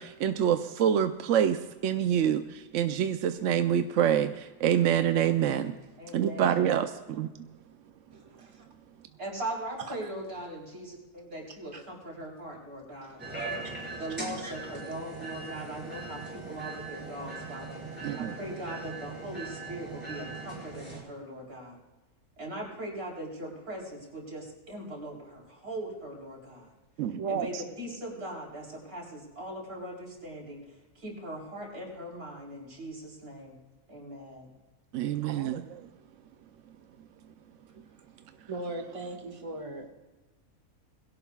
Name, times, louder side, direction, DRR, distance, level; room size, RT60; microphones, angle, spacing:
voice 1, 0.0-5.7 6.1-7.3 18.0-18.3 27.0-27.6 34.9-35.8, right 9 dB, 70° right, 8 dB, 0.9 m, -26 dB
voice 2, 6.0-6.6 9.2-13.2 14.0-17.8 18.1-21.8 22.4-26.7 27.3-30.6 31.0-33.6 33.9-34.5, right 1 dB, 90° right, -2 dB, 4.3 m, -40 dB
voice 3, 8.1-8.5 9.8-10.1 11.7-11.8 13.0-13.2 14.4-14.5 38.5-39.9, right 2 dB, 25° right, 2 dB, 1.6 m, -39 dB
sound 1, 13.2-21.0, right 3 dB, 5° right, 5.0 m, -40 dB
21.5 x 17.0 x 2.3 m, 1.2 s
omnidirectional pair, 1.5 m